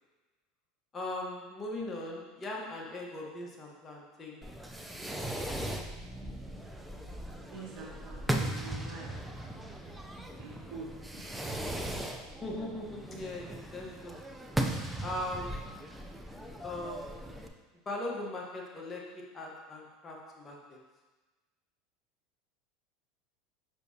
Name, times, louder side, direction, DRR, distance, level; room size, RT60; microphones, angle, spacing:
voice 1, 0.9-4.5 12.4-14.2 15.0-15.6 16.6-17.4 17.8-20.8, left 1 dB, 25° left, -1 dB, 1.2 m, -39 dB
Fireworks, 4.4-17.5, right 1 dB, 5° right, 0.5 m, -38 dB
voice 2, 7.5-9.1 10.4-10.9 11.1-11.4, right 4 dB, 55° right, -3 dB, 1.8 m, -45 dB
6.8 x 6.0 x 2.8 m, 1.2 s
supercardioid pair, 120°, 0 cm